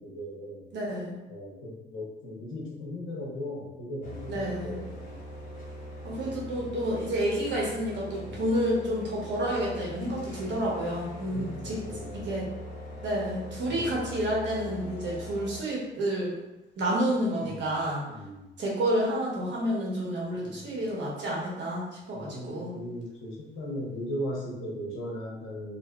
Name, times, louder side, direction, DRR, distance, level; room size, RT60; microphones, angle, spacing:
voice 1, 0.0-0.6 1.3-5.2 6.2-6.6 8.2-8.5 10.4-10.5 11.3-12.3 13.7-14.0 17.4-17.8 18.1-18.5 20.4-20.8 22.1-25.8, equal, 85° left, -2 dB, 0.8 m, -38 dB
voice 2, 0.7-1.2 4.3-4.8 6.0-11.8 12.1-12.5 13.0-16.3 16.8-18.0 18.6-22.7, equal, 65° right, -4 dB, 1.0 m, -30 dB
sound 1, 4.0-15.6, left 1 dB, 40° left, 0.8 m, -41 dB
2.6 x 2.4 x 2.2 m, 0.99 s
cardioid pair, 90°, 20 cm